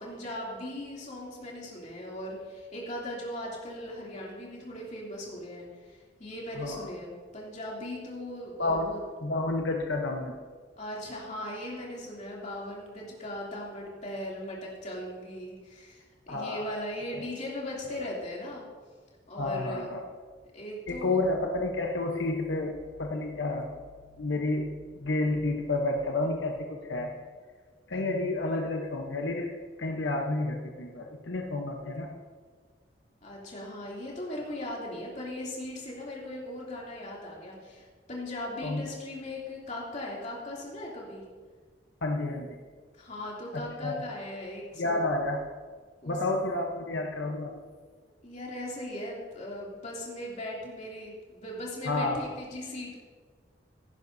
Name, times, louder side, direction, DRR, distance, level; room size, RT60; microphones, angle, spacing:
voice 1, 0.0-9.0 10.8-18.7 19.3-20.0 20.5-21.2 27.9-28.0 33.2-41.2 43.0-45.1 46.0-46.2 48.2-52.9, left 1 dB, 40° left, -4 dB, 2.9 m, -39 dB
voice 2, 6.5-6.9 8.6-8.9 9.2-10.3 16.3-16.7 17.1-17.2 18.0-18.1 19.4-20.0 20.9-23.7 24.2-27.1 27.9-29.5 29.8-32.1 38.6-38.8 42.0-42.6 43.5-44.0 44.8-45.4 46.0-47.6 51.8-52.3, left 2 dB, 90° left, 2 dB, 1.0 m, -30 dB
16.0 x 10.5 x 2.7 m, 1.6 s
head